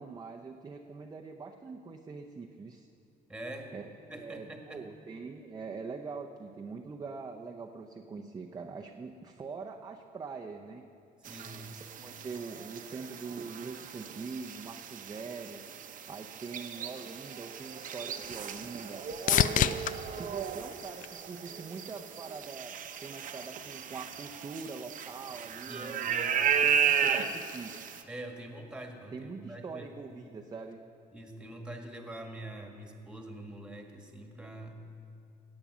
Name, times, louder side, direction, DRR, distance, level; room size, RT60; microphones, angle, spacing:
voice 1, 0.0-2.9 3.7-10.8 11.4-15.6 16.1-19.1 19.6-26.1 26.6-27.7 29.1-30.8, right 4 dB, 25° right, 2 dB, 0.7 m, -43 dB
voice 2, 3.3-3.7 4.1-4.8 11.3-11.8 25.7-26.6 28.1-30.3 31.1-34.8, right 1 dB, 5° right, 3 dB, 1.7 m, -45 dB
sound 1, 11.2-28.0, right 7 dB, 50° right, 0.9 m, -35 dB
sound 2, 17.5-21.8 22.3-22.9 30.7-30.8, left 11 dB, 50° left, 0.4 m, -32 dB
16.0 x 8.7 x 6.1 m, 2.5 s
cardioid pair, 110°, 17 cm